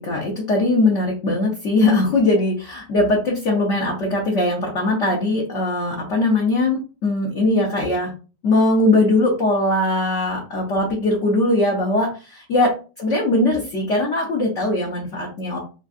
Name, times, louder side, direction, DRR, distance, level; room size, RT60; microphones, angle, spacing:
voice 1, 0.0-8.1 8.4-12.7 13.0-15.6, left 2 dB, 55° left, -2 dB, 0.9 m, -20 dB
3.5 x 2.4 x 2.4 m, 0.34 s
omnidirectional pair, 1.9 m